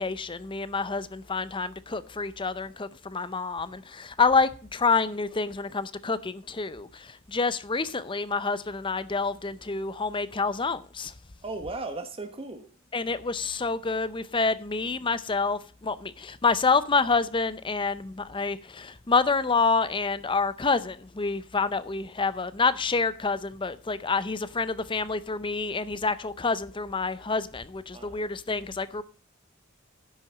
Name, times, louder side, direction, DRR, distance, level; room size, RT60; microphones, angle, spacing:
voice 1, 0.0-11.1 12.9-29.0, left 4 dB, 25° left, 0.6 m, -27 dB
voice 2, 11.4-12.7 27.9-28.3, right 2 dB, 25° right, 1.1 m, -36 dB
10.5 x 6.1 x 7.3 m
head